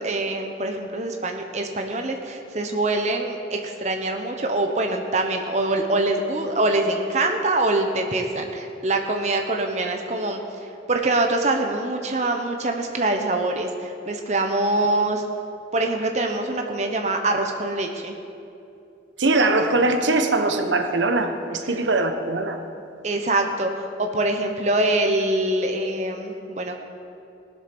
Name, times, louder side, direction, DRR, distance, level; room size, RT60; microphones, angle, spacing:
voice 1, 0.0-10.4 10.9-15.2 15.7-18.1 21.7-21.8 23.0-26.8, right 2 dB, 40° right, 4 dB, 0.9 m, -24 dB
voice 2, 19.2-22.6, right 2 dB, 85° right, 6 dB, 1.1 m, -21 dB
19.0 x 7.7 x 6.1 m, 2.7 s
head